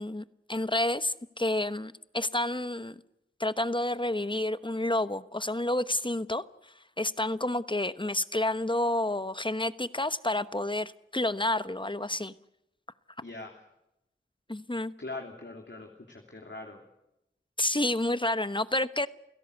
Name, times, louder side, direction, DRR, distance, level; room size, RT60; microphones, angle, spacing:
voice 1, 0.0-3.0 3.4-12.3 14.5-14.9 17.6-19.1, left 1 dB, 25° left, 1.0 m, -30 dB
voice 2, 13.2-13.6 15.0-16.8, left 2 dB, 65° left, 3.2 m, -42 dB
29.5 x 17.0 x 8.2 m
wide cardioid pair, 45°, 20 cm